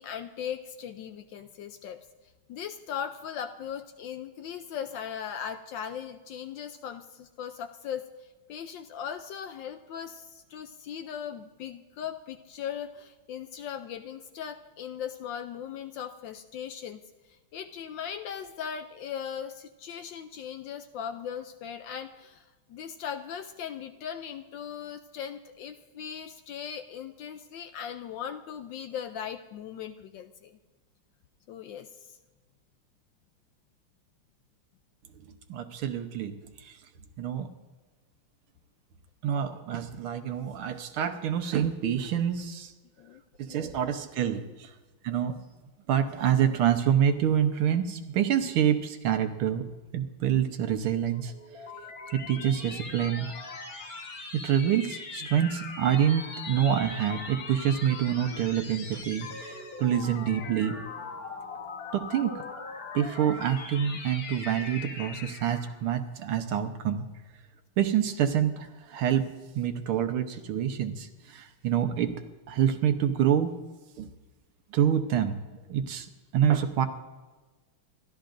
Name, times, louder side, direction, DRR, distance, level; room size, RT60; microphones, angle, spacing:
voice 1, 0.0-2.0 2.5-17.0 17.3-30.6 31.5-32.2 43.0-43.2 43.5-43.6 44.4-44.5, left 8 dB, 70° left, 8 dB, 1.1 m, -39 dB
voice 2, 35.5-36.8 37.2-37.5 39.2-42.7 43.4-44.7 45.0-45.4 45.9-51.3 52.1-53.3 54.3-60.8 61.9-62.4 62.9-67.0 67.8-69.3 69.5-72.1 72.5-73.5 74.0-74.1 74.7-75.4 75.7-76.1 76.3-76.9, right 9 dB, 75° right, 7 dB, 1.8 m, -27 dB
sound 1, 51.1-65.8, left 4 dB, 45° left, 1.7 m, -41 dB
28.0 x 12.5 x 2.6 m, 1.2 s
omnidirectional pair, 2.4 m